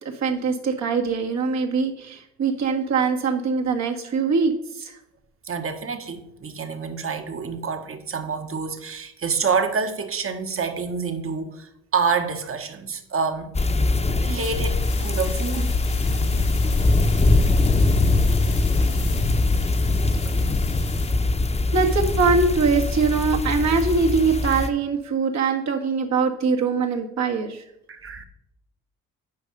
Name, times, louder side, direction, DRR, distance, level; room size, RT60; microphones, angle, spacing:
voice 1, 0.0-4.9 17.1-17.2 21.7-27.7, right 4 dB, 60° right, 1.7 m, -22 dB
voice 2, 5.4-13.5 14.1-15.8 27.9-28.3, right 5 dB, 45° right, 1.4 m, -27 dB
sound 1, 13.5-24.7, left 2 dB, 20° left, 0.9 m, -22 dB
sound 2, 14.4-21.1, left 6 dB, 80° left, 2.4 m, -33 dB
9.4 x 5.4 x 5.4 m
supercardioid pair, 60°, 31 cm